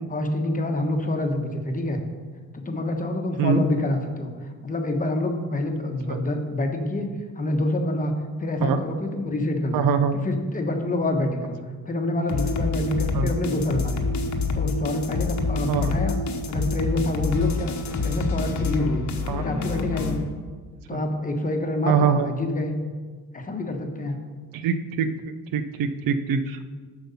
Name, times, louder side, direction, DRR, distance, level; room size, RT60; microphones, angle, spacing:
voice 1, 0.1-2.0 2.5-7.1 7.3-8.1 8.4-9.8 10.2-11.6 11.9-14.0 14.5-16.2 16.5-17.7 18.0-19.0 19.4-20.3 20.9-22.7 23.3-24.2, left 1 dB, 25° left, 4 dB, 1.0 m, -27 dB
voice 2, 9.7-10.1 13.1-13.3 15.7-15.9 19.3-19.4 20.9-21.0 21.9-22.3 24.5-25.1 25.5-26.6, right 6 dB, 75° right, 10 dB, 0.7 m, -23 dB
sound 1, 12.3-20.3, left 4 dB, 55° left, 1.0 m, -27 dB
7.8 x 6.2 x 5.5 m, 1.5 s
cardioid pair, 115°, 34 cm